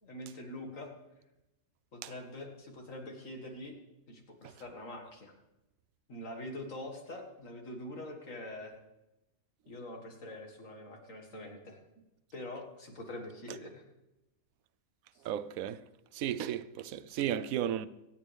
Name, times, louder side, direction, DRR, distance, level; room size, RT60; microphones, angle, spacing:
voice 1, 0.0-0.9 1.9-3.8 4.1-5.3 6.1-8.7 9.7-12.0 12.3-13.9 15.1-15.2, left 1 dB, 70° left, 2.3 m, -44 dB
voice 2, 15.2-15.8 16.1-17.9, right 10 dB, 80° right, 1.0 m, -34 dB
25.0 x 8.8 x 3.4 m
omnidirectional pair, 1.4 m